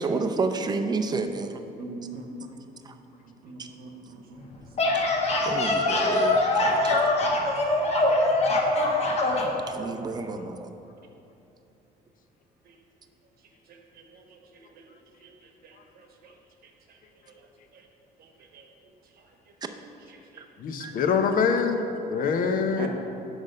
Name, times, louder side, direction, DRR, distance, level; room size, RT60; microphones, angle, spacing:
voice 1, 0.0-1.6 2.9-3.0 3.6-3.7 4.9-5.0 5.4-7.1 9.8-10.7 20.8-20.9, right 4 dB, 25° right, 7 dB, 0.5 m, -30 dB
voice 2, 1.8-2.3 3.2-4.5 9.0-9.4 12.6-12.8 13.7-14.4 14.7-14.8 15.2-16.3 16.6-17.0 17.3-17.5 17.7-17.9 18.2-18.7 19.2-19.3 19.6-19.7 20.1-20.4 22.8-22.9, right 4 dB, 65° right, 2 dB, 1.0 m, -45 dB
sound 1, 4.5-9.5, left 2 dB, 40° left, 1.1 m, -23 dB
voice 3, 20.6-22.9, left 5 dB, 55° left, 6 dB, 0.7 m, -24 dB
6.2 x 5.2 x 5.3 m, 2.9 s
cardioid pair, 110°, 17 cm